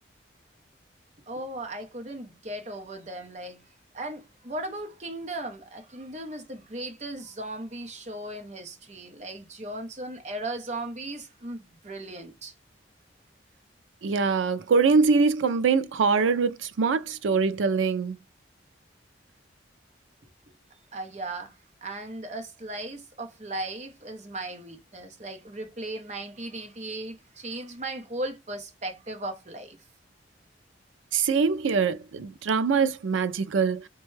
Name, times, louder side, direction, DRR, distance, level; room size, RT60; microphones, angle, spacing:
voice 1, 1.3-3.7 3.9-12.5 20.9-29.8, right 1 dB, 35° right, 0.7 m, -37 dB
voice 2, 14.0-18.2 31.1-33.9, right 5 dB, 90° right, 0.4 m, -23 dB
4.2 x 2.2 x 3.1 m
head